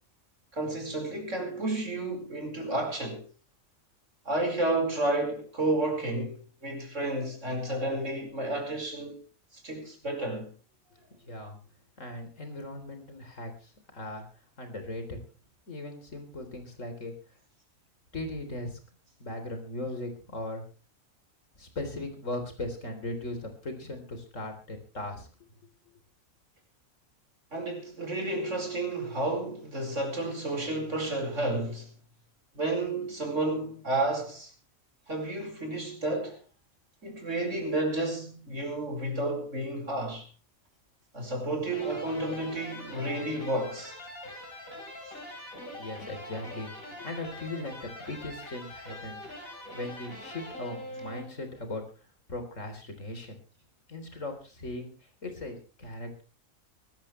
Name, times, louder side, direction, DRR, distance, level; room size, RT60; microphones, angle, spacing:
voice 1, 0.5-3.2 4.2-9.2 9.5-10.5 27.5-31.9 32.5-34.5 35.1-36.4 37.0-40.3 41.1-43.9, right 2 dB, 60° right, 5.1 m, -31 dB
voice 2, 11.2-11.6 12.0-14.2 14.6-15.2 15.7-17.1 18.1-18.8 19.2-20.6 21.6-25.3 45.7-51.8 52.3-53.4 53.9-54.9 55.2-56.2, left 2 dB, 65° left, 4.0 m, -38 dB
sound 1, 41.7-51.7, left 1 dB, 80° left, 5.3 m, -43 dB
23.0 x 13.5 x 3.2 m
omnidirectional pair, 1.4 m